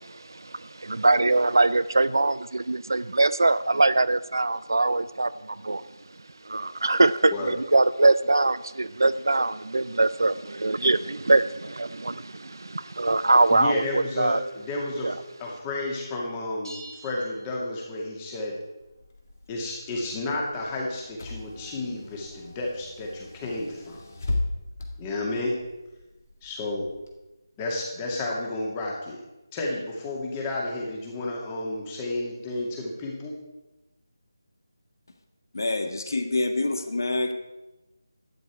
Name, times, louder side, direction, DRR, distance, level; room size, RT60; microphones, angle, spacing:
voice 1, 0.0-5.8 6.5-14.4 15.0-15.1, right 2 dB, 70° right, 16 dB, 0.4 m, -23 dB
voice 2, 13.5-18.6 19.5-24.0 25.0-25.6 26.4-26.9 27.6-29.2 29.5-33.3, left 2 dB, 15° left, -1 dB, 2.3 m, -31 dB
sound 1, 16.6-18.2, right 1 dB, 90° right, 3.2 m, -46 dB
Car / Engine, 18.8-27.1, left 2 dB, 45° left, 2.0 m, -37 dB
voice 3, 35.5-37.3, left 2 dB, 60° left, 7 dB, 1.4 m, -26 dB
12.0 x 9.5 x 4.6 m, 1.0 s
figure-of-eight pair, 160°, 2 cm